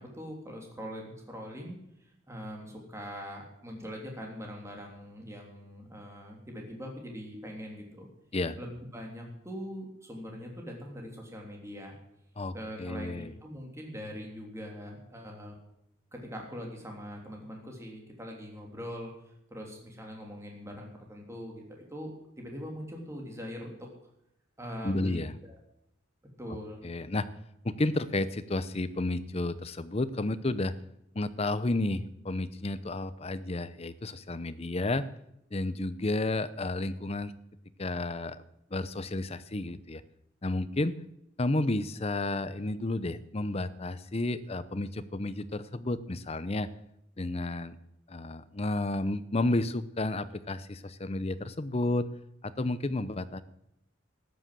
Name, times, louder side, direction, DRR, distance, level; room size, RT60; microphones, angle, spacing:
voice 1, 0.0-8.1 8.6-11.9 12.5-15.6 16.1-22.1 22.4-23.9 24.6-25.6 26.4-26.8, equal, 15° right, 0 dB, 3.2 m, -42 dB
voice 2, 12.8-13.3 24.8-25.3 26.8-27.3 27.6-30.7 31.1-35.1 35.5-37.3 37.8-38.4 38.7-40.0 40.4-41.0 41.4-46.7 47.2-47.8 48.1-52.1 52.4-53.4, left 2 dB, 30° left, 14 dB, 0.7 m, -31 dB
13.5 x 10.0 x 7.6 m, 0.80 s
head